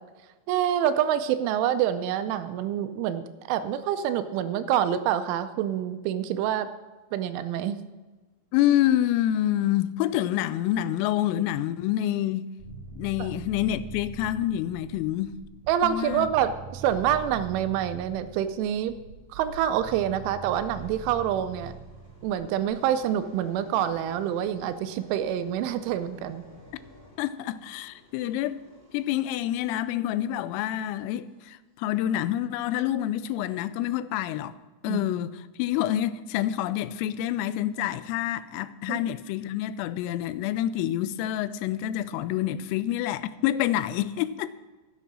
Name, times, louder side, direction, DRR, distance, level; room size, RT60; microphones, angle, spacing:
voice 1, 0.5-6.7 7.1-7.8 13.2-13.3 15.7-19.0 19.3-21.7 22.2-26.4 34.9-35.1 38.9-39.0, right 10 dB, 80° right, 2.9 m, -27 dB
voice 2, 8.5-12.5 13.0-15.3 15.8-16.3 27.2-28.7 28.9-34.5 34.8-44.5, left 12 dB, 85° left, 3.2 m, -27 dB
sound 1, 12.6-22.7, right 4 dB, 40° right, 6.5 m, -43 dB
sound 2, 20.5-31.5 32.0-32.3, equal, 25° right, 1.9 m, -52 dB
13.5 x 9.6 x 6.2 m
omnidirectional pair, 6.0 m